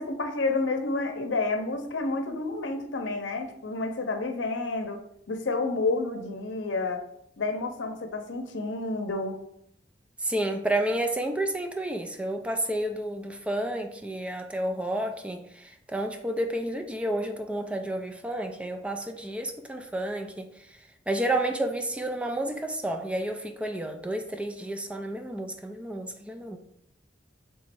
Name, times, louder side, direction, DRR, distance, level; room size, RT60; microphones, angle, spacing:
voice 1, 0.0-5.0 5.3-7.0 7.4-9.4, left 3 dB, 85° left, 5 dB, 0.7 m, -30 dB
voice 2, 10.2-20.5 21.1-26.6, right 1 dB, 5° right, 5 dB, 0.3 m, -30 dB
3.5 x 3.0 x 4.4 m, 0.74 s
head